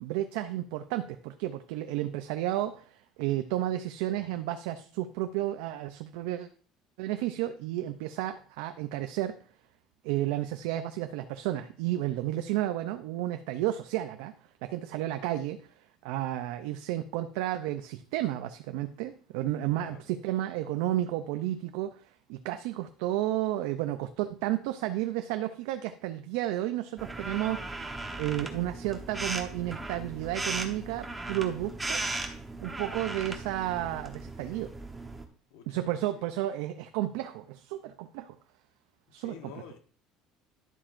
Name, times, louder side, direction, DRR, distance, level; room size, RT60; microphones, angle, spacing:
voice 1, 0.0-6.5 7.0-9.4 10.0-14.3 14.6-15.6 16.0-22.0 22.3-27.8 28.2-32.0 32.6-34.7 35.7-38.4 39.1-39.5, right 14 dB, 85° right, 0.5 m, -32 dB
voice 2, 19.6-20.1 35.5-36.3 39.2-39.8, left 8 dB, 85° left, 1.1 m, -49 dB
sound 1, 27.0-35.3, right 2 dB, 10° right, 1.1 m, -37 dB
11.0 x 7.3 x 2.6 m
cardioid pair, 135°, 0 cm